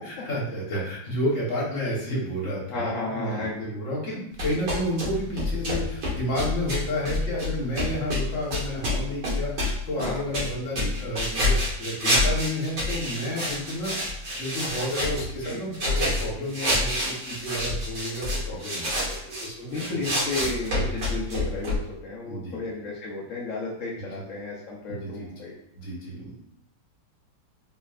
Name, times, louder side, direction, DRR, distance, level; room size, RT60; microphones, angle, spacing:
voice 1, 0.0-20.1 22.3-22.6 24.0-24.2 24.9-25.3 25.7-26.4, equal, 45° left, -5 dB, 1.4 m, -31 dB
voice 2, 2.7-3.7 10.0-10.2 15.4-15.6 19.6-25.5, left 3 dB, 65° left, -5 dB, 0.8 m, -33 dB
sound 1, 4.4-19.5 19.7-21.8, left 1 dB, 55° right, 1.8 m, -28 dB
4.1 x 3.2 x 2.4 m, 0.80 s
omnidirectional pair, 2.2 m